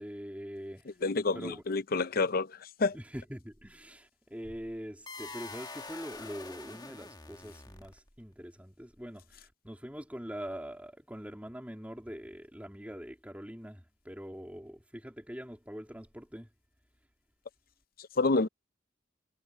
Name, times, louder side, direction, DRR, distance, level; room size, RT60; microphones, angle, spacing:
voice 1, 0.0-1.0 1.3-1.6 2.9-16.5, equal, 10° right, 3.5 m, -43 dB
voice 2, 1.0-2.5 2.8-3.0 18.2-18.5, left 3 dB, 50° left, 0.7 m, -28 dB
sound 1, 5.1-8.2, left 3 dB, 20° left, 1.5 m, -45 dB
head